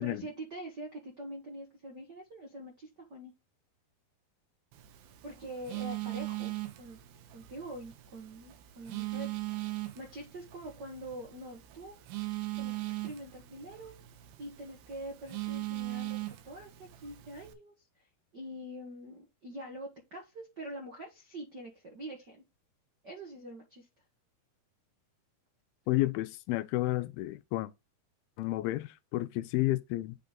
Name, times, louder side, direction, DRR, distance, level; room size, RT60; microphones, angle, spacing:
voice 1, 0.0-3.3 5.2-7.0 7.3-9.3 9.9-11.9 12.6-14.0 14.4-18.0 18.3-22.4 23.0-23.9, right 1 dB, 60° right, 1.0 m, -44 dB
Telephone, 4.7-17.5, right 19 dB, 80° right, 2.7 m, -40 dB
voice 2, 25.9-27.7 28.4-30.2, left 17 dB, 85° left, 2.4 m, -31 dB
8.8 x 4.1 x 3.7 m
omnidirectional pair, 4.3 m